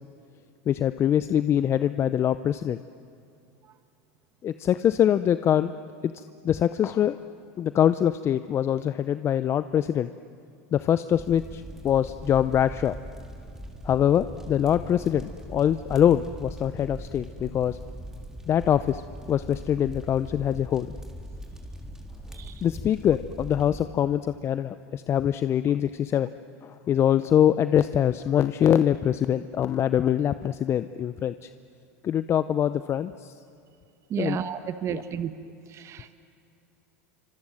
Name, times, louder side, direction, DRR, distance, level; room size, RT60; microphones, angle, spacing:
voice 1, 0.7-2.8 4.4-5.7 6.0-7.2 7.6-10.1 10.7-12.9 13.8-17.8 18.5-19.0 19.3-20.9 22.6-26.3 26.6-31.5 32.0-33.3 34.2-34.4 34.9-35.0, left 10 dB, 35° left, 13 dB, 0.6 m, -24 dB
Ambiance Campfire Loop Stereo, 11.1-23.9, right 1 dB, 5° right, 3.7 m, -41 dB
voice 2, 34.1-35.3 35.8-36.1, right 9 dB, 40° right, 11 dB, 1.3 m, -31 dB
29.0 x 25.5 x 7.8 m, 2.5 s
hypercardioid pair, 100°, 8 cm